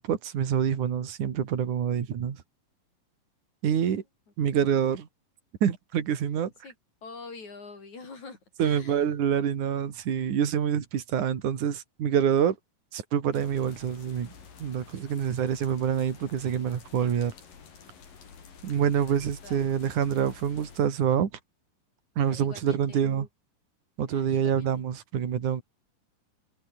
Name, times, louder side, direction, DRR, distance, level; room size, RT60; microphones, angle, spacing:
voice 1, 0.0-2.4 3.6-4.0 4.4-5.1 5.6-6.5 8.6-12.6 12.9-14.3 14.6-17.3 18.6-21.3 22.2-23.3 24.0-25.6, right 8 dB, 65° right, 3.9 m, -26 dB
voice 2, 7.0-9.1 18.9-19.7 22.2-23.1 24.1-24.7, left 4 dB, 55° left, 7.3 m, -46 dB
sound 1, 13.3-20.8, left 6 dB, 80° left, 6.0 m, -50 dB
omnidirectional pair, 3.9 m